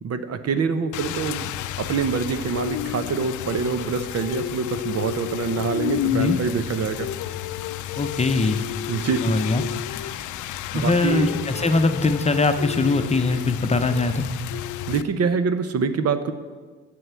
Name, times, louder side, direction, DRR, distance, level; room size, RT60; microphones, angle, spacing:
voice 1, 0.0-1.5 1.8-7.1 8.9-9.3 10.7-11.4 14.9-16.3, right 5 dB, 55° right, 10 dB, 0.9 m, -25 dB
Rain, 0.9-15.0, left 12 dB, 80° left, 0.5 m, -31 dB
voice 2, 7.9-8.6 9.2-9.6 10.7-14.3, left 3 dB, 20° left, 8 dB, 0.8 m, -22 dB
7.9 x 7.7 x 8.2 m, 1.4 s
cardioid pair, 90°, 30 cm